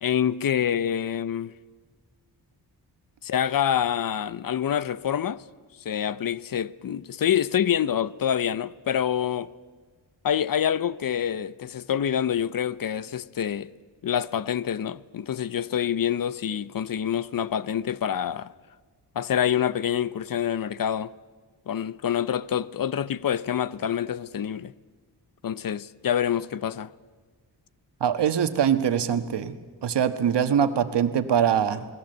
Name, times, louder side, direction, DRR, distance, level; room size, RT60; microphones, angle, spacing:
voice 1, 0.0-1.5 3.2-5.4 5.8-9.5 10.2-13.7 14.0-18.5 19.2-21.1 21.7-24.7 25.4-26.9, left 9 dB, 55° left, 0.7 m, -26 dB
voice 2, 28.0-29.5 29.8-31.9, right 8 dB, 85° right, 1.4 m, -23 dB
28.5 x 20.5 x 7.9 m
wide cardioid pair, 160°, 41 cm